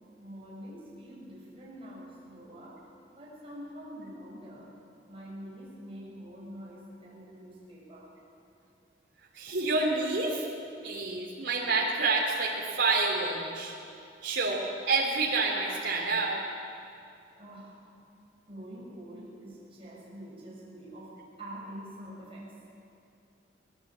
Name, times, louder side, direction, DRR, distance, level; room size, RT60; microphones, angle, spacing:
voice 1, 0.2-2.8 3.1-4.7 5.1-8.1 17.4-17.7 18.5-22.5, equal, 30° right, -6 dB, 7.5 m, -45 dB
voice 2, 9.3-10.5 10.8-13.7 14.2-16.4, right 3 dB, 80° right, -2 dB, 3.1 m, -28 dB
24.0 x 19.0 x 7.5 m, 2.6 s
head